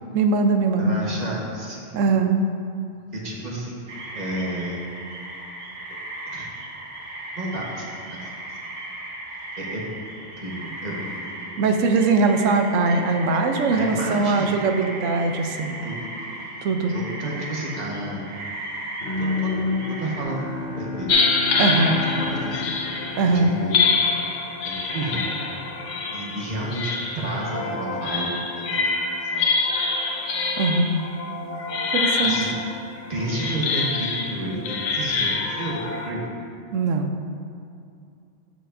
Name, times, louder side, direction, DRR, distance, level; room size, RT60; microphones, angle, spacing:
voice 1, 0.1-1.1 1.9-2.4 11.6-15.8 16.6-16.9 21.6-22.0 23.2-23.5 30.6-31.0 31.9-32.4 36.7-37.1, right 3 dB, 85° right, 5 dB, 1.0 m, -21 dB
voice 2, 0.8-2.0 3.1-4.8 6.3-6.5 7.3-8.6 9.6-11.6 13.7-14.5 15.6-16.0 16.3-16.6 16.9-18.2 19.2-21.2 21.8-21.9 22.2-22.6 23.2-23.8 24.6-25.3 26.1-28.8 29.3-29.5 31.4-31.9 32.2-32.6 33.1-36.2, right 1 dB, 35° right, -4 dB, 1.3 m, -32 dB
sound 1, 3.9-20.2, right 2 dB, 70° right, 1.3 m, -36 dB
Bowed string instrument, 19.0-24.1, left 3 dB, 50° left, 1.1 m, -30 dB
sound 2, 21.1-36.1, left 4 dB, 85° left, 1.1 m, -26 dB
14.0 x 5.0 x 2.6 m, 2.4 s
omnidirectional pair, 1.3 m